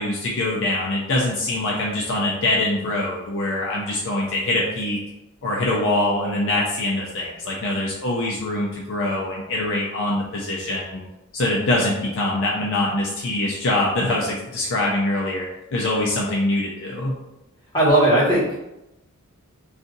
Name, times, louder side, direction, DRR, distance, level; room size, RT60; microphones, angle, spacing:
voice 1, 0.0-5.0 5.4-11.0 11.3-15.5 15.7-17.2, left 1 dB, 60° left, -3 dB, 0.5 m, -23 dB
voice 2, 17.7-18.6, right 1 dB, 20° left, -8 dB, 1.3 m, -17 dB
2.6 x 2.4 x 3.8 m, 0.94 s
head